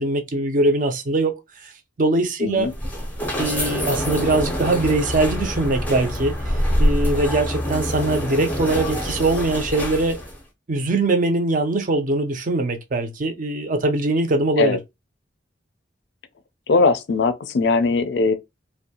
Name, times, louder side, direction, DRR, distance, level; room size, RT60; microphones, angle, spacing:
voice 1, 0.0-1.7 2.0-2.7 3.4-10.2 10.7-14.8, right 2 dB, 45° right, 0.5 m, -22 dB
voice 2, 2.4-2.7 14.6-14.8 16.7-18.3, left 4 dB, 60° left, 0.4 m, -20 dB
sound 1, 2.6-10.4, equal, 10° left, 0.6 m, -25 dB
2.6 x 2.2 x 2.7 m
head